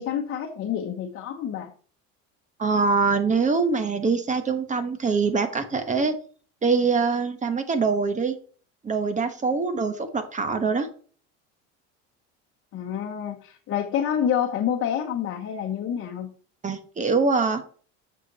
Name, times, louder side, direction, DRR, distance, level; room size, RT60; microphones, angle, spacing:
voice 1, 0.0-1.7 12.7-16.3, left 9 dB, 40° left, 1 dB, 1.1 m, -28 dB
voice 2, 2.6-6.2 6.6-8.4 8.8-10.9 16.6-17.6, right 4 dB, 20° right, 9 dB, 1.1 m, -24 dB
8.3 x 6.8 x 4.0 m, 0.42 s
cardioid pair, 125°, 33 cm